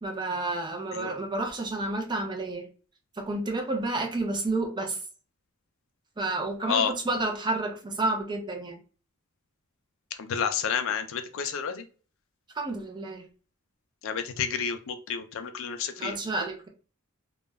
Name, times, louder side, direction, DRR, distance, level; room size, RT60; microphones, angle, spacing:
voice 1, 0.0-2.7 3.2-5.0 6.2-8.8 12.5-13.3 16.0-16.7, right 2 dB, 20° right, 2 dB, 0.5 m, -30 dB
voice 2, 10.2-11.9 14.0-16.2, left 7 dB, 65° left, 8 dB, 0.4 m, -30 dB
2.3 x 2.0 x 3.3 m, 0.37 s
head